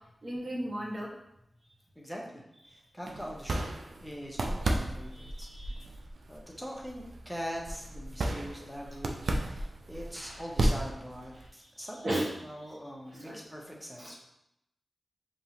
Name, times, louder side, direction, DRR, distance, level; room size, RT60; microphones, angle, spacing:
voice 1, 0.2-1.1 2.7-2.8 5.1-5.8 10.1-10.4 11.8-12.5 13.1-13.4 14.0-14.1, right 1 dB, 45° right, -4 dB, 1.3 m, -36 dB
voice 2, 1.9-2.4 2.7-3.8 4.0-5.7 6.3-12.0 12.4-14.2, equal, ahead, -3 dB, 1.0 m, -42 dB
sound 1, 3.0-11.5, right 1 dB, 80° right, 0.5 m, -34 dB
5.3 x 3.0 x 2.9 m, 0.83 s
cardioid pair, 50°, 0 cm